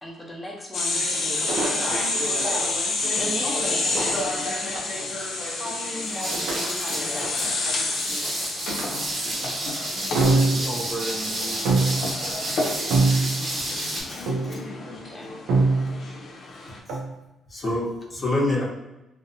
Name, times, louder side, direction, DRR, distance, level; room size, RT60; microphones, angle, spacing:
voice 1, 0.0-2.8 3.1-4.5 5.5-8.6 14.9-15.3, equal, 10° left, -3 dB, 0.7 m, -37 dB
sound 1, 0.7-16.8, left 2 dB, 65° left, 0.5 m, -29 dB
sound 2, 1.5-2.6 3.9-5.0 6.3-7.9 8.7-8.9 9.2-9.5 10.1-10.9 11.6-12.2 12.9-13.6 14.3-14.7 15.5-16.1 16.9-17.1, right 3 dB, 85° right, 0.5 m, -24 dB
sound 3, 6.0-14.0, right 1 dB, 50° right, 0.8 m, -31 dB
voice 2, 10.2-12.6, right 1 dB, 20° right, -2 dB, 0.5 m, -35 dB
voice 3, 13.5-14.6 17.5-18.6, left 2 dB, 35° left, -4 dB, 0.8 m, -28 dB
2.5 x 2.1 x 2.6 m, 0.96 s
cardioid pair, 90°, 0 cm